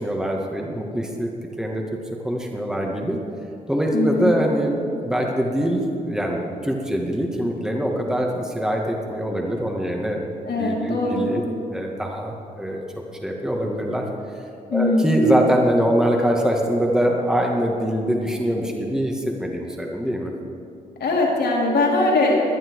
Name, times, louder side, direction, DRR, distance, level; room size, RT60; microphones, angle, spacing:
voice 1, 0.0-1.3 1.6-2.0 2.2-3.2 3.7-10.2 10.6-11.4 11.7-12.8 13.2-14.1 14.7-20.3, equal, 5° right, 0 dB, 2.3 m, -23 dB
voice 2, 3.9-4.3 10.4-11.3 14.7-15.1 21.0-22.4, left 2 dB, 55° left, -3 dB, 3.7 m, -21 dB
19.0 x 10.5 x 4.9 m, 2.5 s
hypercardioid pair, 40°, 20 cm